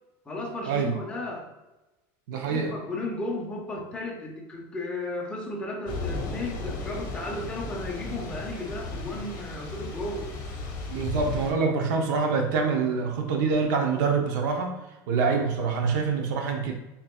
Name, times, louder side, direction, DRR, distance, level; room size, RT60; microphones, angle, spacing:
voice 1, 0.2-1.5 2.4-10.3, left 2 dB, 10° left, -2 dB, 0.7 m, -34 dB
voice 2, 2.3-2.7 10.9-14.7 15.1-16.7, right 5 dB, 80° right, 3 dB, 0.8 m, -25 dB
Thunder / Rain, 5.9-11.5, left 3 dB, 50° left, 0.9 m, -35 dB
4.3 x 3.8 x 2.3 m, 1.0 s
cardioid pair, 155°, 10 cm